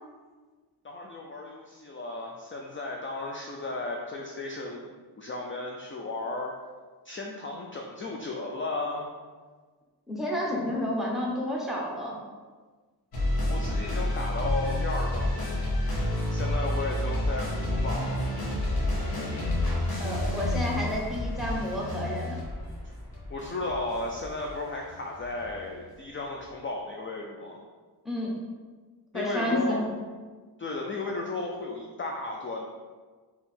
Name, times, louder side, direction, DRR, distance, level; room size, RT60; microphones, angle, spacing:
voice 1, 0.8-6.5 7.0-9.1 13.5-15.6 16.3-18.3 23.3-27.6 29.1-29.8 30.6-32.7, left 2 dB, 30° left, 0 dB, 0.4 m, -34 dB
voice 2, 10.1-12.2 20.0-22.4 28.0-28.4 29.1-30.0, left 1 dB, ahead, -3 dB, 0.9 m, -30 dB
sound 1, 13.1-25.5, left 1 dB, 60° left, 1.1 m, -30 dB
3.7 x 2.9 x 4.2 m, 1.4 s
wide cardioid pair, 105°, 41 cm